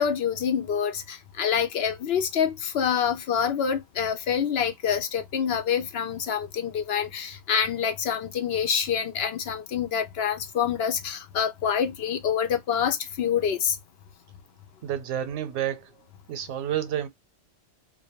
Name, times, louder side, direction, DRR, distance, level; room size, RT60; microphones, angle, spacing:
voice 1, 0.0-13.8, left 7 dB, 65° left, 0.8 m, -26 dB
voice 2, 14.8-15.9 16.3-17.1, right 10 dB, 90° right, 0.9 m, -29 dB
2.5 x 2.2 x 2.7 m
omnidirectional pair, 1.2 m